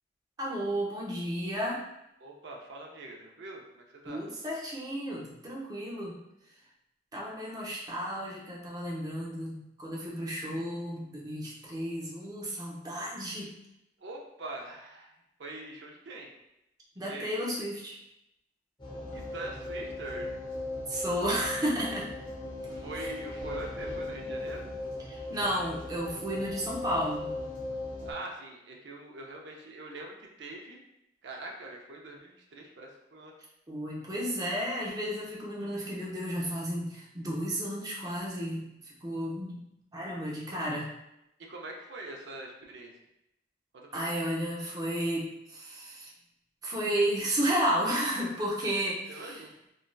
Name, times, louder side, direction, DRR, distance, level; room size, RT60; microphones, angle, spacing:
voice 1, 0.4-1.8 4.1-6.2 7.1-13.5 17.0-18.0 20.9-22.1 22.9-23.1 25.1-27.3 33.7-40.9 43.9-46.1 46.6-49.4, equal, 20° right, -4 dB, 0.5 m, -33 dB
voice 2, 2.2-4.2 14.0-15.1 15.4-16.4 17.1-17.3 17.6-17.7 19.1-20.4 22.7-24.6 28.0-30.8 31.2-33.3 40.5-40.6 41.5-42.9 43.7-44.1 49.1-49.5, right 2 dB, 70° right, 0 dB, 0.5 m, -43 dB
sound 1, 18.8-28.1, left 2 dB, 25° left, 0.8 m, -38 dB
3.1 x 2.6 x 2.2 m, 0.86 s
head